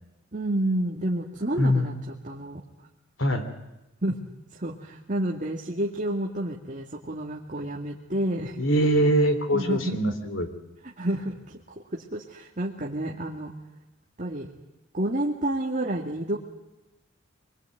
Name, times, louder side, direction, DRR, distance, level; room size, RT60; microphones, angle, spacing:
voice 1, 0.3-2.6 4.0-4.2 4.5-8.6 9.5-10.0 10.8-11.6 11.9-13.5 14.2-14.5 14.9-16.4, right 1 dB, 40° right, -1 dB, 2.2 m, -29 dB
voice 2, 1.6-1.9 3.2-3.5 8.6-10.5, equal, 70° left, 8 dB, 3.3 m, -23 dB
25.0 x 21.5 x 9.2 m, 0.97 s
head